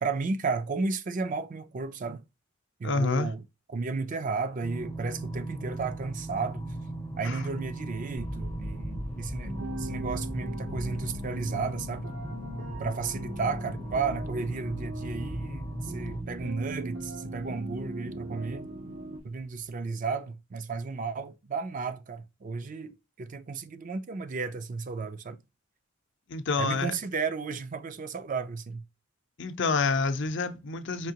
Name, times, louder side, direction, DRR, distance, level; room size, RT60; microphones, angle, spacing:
voice 1, 0.0-2.2 2.8-3.4 3.7-6.7 7.2-9.5 9.8-12.1 12.8-18.6 19.2-25.4 26.6-28.8, right 4 dB, 40° right, 0.4 m, -33 dB
voice 2, 2.8-3.3 7.2-7.4 26.3-26.9 29.4-31.1, left 4 dB, 60° left, 0.6 m, -28 dB
sound 1, 4.6-16.2, right 1 dB, 15° left, 0.5 m, -38 dB
sound 2, 8.2-19.7, equal, 90° right, 2.6 m, -43 dB
sound 3, 9.4-19.2, right 1 dB, 70° right, 0.9 m, -40 dB
4.6 x 2.8 x 2.8 m
head